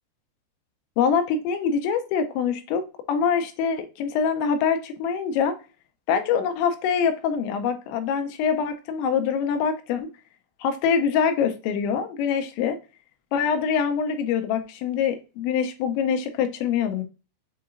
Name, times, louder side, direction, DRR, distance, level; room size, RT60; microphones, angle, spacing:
voice 1, 1.0-5.6 6.1-10.1 10.6-12.8 13.3-17.0, left 7 dB, 85° left, 7 dB, 2.9 m, -24 dB
7.0 x 2.8 x 2.5 m, 0.32 s
omnidirectional pair, 5.2 m